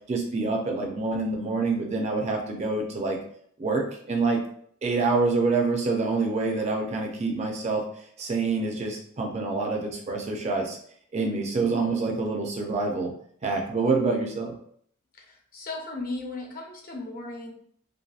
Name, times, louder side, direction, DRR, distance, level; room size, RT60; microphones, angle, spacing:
voice 1, 0.1-3.2 3.6-4.4 4.8-7.8 8.2-10.8 11.1-13.1 13.4-14.5, right 3 dB, 30° right, 1 dB, 0.4 m, -26 dB
voice 2, 15.2-17.5, left 2 dB, 45° left, 0 dB, 0.6 m, -36 dB
2.7 x 2.6 x 2.3 m, 0.62 s
head